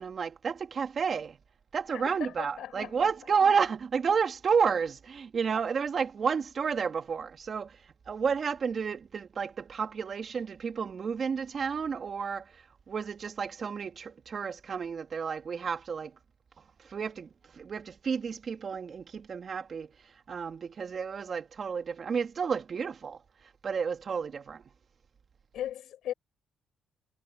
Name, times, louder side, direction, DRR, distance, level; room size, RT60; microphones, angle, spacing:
voice 1, 0.0-1.4 1.7-7.8 8.1-16.2 16.8-19.9 20.3-23.2 23.6-24.6, right 6 dB, 45° right, 2.7 m, -31 dB
voice 2, 1.9-3.1 25.5-26.1, left 11 dB, 75° left, 7.2 m, -38 dB
cardioid pair, 90°, 0 cm